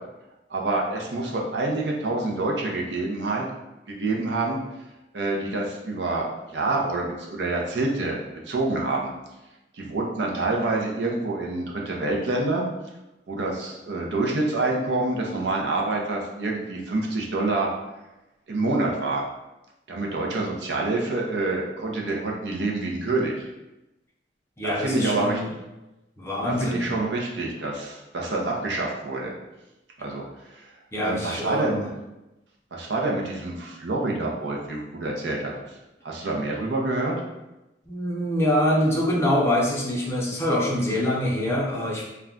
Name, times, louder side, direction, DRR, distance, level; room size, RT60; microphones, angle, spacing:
voice 1, 0.5-3.5 3.9-4.6 5.1-8.2 8.5-9.1 9.7-12.7 13.3-17.7 18.5-19.2 19.9-23.4 24.6-25.4 26.4-29.3 30.0-30.2 30.5-30.7 31.0-31.8 32.7-35.8 36.0-37.1, right 2 dB, 70° right, -1 dB, 0.5 m, -27 dB
voice 2, 24.6-25.5 26.2-26.9 30.9-31.9 37.9-42.0, left 1 dB, 15° left, -4 dB, 0.5 m, -25 dB
2.3 x 2.2 x 3.6 m, 0.98 s
head